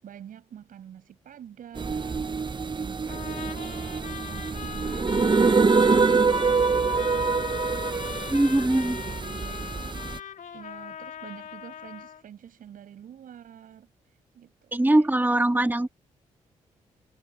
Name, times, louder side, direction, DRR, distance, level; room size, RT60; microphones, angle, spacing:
voice 1, 0.0-7.5 8.5-9.8 10.5-13.9 14.3-14.7 15.0-15.7, right 9 dB, 70° right, 7.3 m, -46 dB
sound 1, 1.8-10.2, right 4 dB, 30° right, 1.0 m, -25 dB
Trumpet, 3.1-12.2, left 9 dB, 65° left, 4.8 m, -39 dB
voice 2, 8.3-9.0 14.7-15.9, right 1 dB, 15° right, 2.9 m, -22 dB
supercardioid pair, 50°, 15 cm